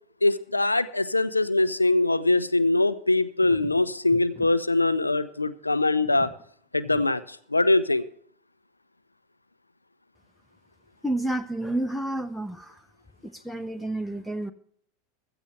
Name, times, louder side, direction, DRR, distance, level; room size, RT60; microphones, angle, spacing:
voice 1, 0.2-6.3 6.7-8.1, left 2 dB, 85° left, 0.6 m, -23 dB
sound 1, 3.4-4.5 4.8-5.0 5.3-5.4 5.9-6.4 6.8-7.1 7.6-7.7, left 3 dB, 30° left, 1.9 m, -45 dB
voice 2, 11.0-12.8 13.2-14.5, right 1 dB, 5° left, 0.7 m, -30 dB
16.0 x 12.5 x 3.3 m
figure-of-eight pair, 85°, 0 cm